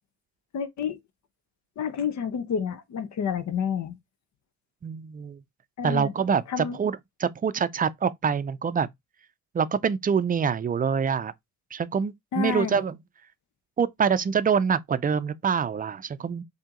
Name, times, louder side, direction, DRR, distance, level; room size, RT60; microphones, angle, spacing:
voice 1, 0.5-1.0 1.8-4.0 5.8-6.1 6.5-6.8 12.3-12.8, left 7 dB, 65° left, 0.8 m, -29 dB
voice 2, 4.8-5.4 5.8-8.9 9.5-11.3 11.7-13.0 13.8-16.4, right 6 dB, 30° right, 0.4 m, -25 dB
4.5 x 2.8 x 3.7 m
cardioid pair, 90°, 30 cm